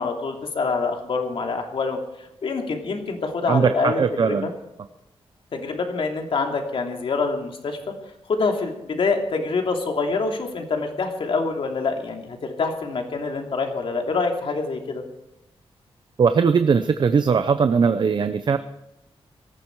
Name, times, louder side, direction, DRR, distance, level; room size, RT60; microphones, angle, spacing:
voice 1, 0.0-2.0 2.4-4.5 5.5-7.8 8.3-15.0, left 4 dB, 60° left, 3 dB, 2.9 m, -26 dB
voice 2, 3.5-4.5 16.2-18.6, right 5 dB, 45° right, 10 dB, 0.7 m, -19 dB
19.0 x 14.5 x 4.7 m, 0.89 s
wide cardioid pair, 145°, 10 cm